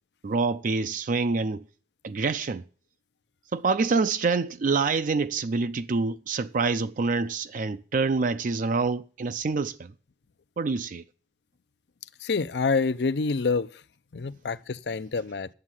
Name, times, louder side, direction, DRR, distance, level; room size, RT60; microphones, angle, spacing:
voice 1, 0.2-1.6 2.0-2.6 3.5-9.9 10.6-11.0, right 4 dB, 50° right, 0.4 m, -26 dB
voice 2, 12.2-13.7 14.1-15.5, left 4 dB, 70° left, 0.6 m, -27 dB
9.8 x 7.3 x 7.5 m
head